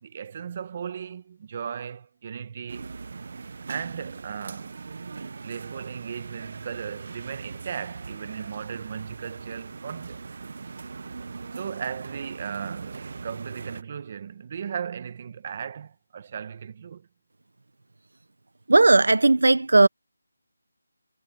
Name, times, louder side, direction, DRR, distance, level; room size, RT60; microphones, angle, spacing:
voice 1, 0.0-2.9 3.7-4.8 5.4-10.2 11.5-17.1, right 7 dB, 30° right, 1.3 m, -36 dB
sound 1, 2.7-13.8, right 4 dB, 45° right, 1.2 m, -40 dB
voice 2, 18.7-19.9, right 2 dB, 80° right, 0.9 m, -17 dB
figure-of-eight pair, 170°, 0 cm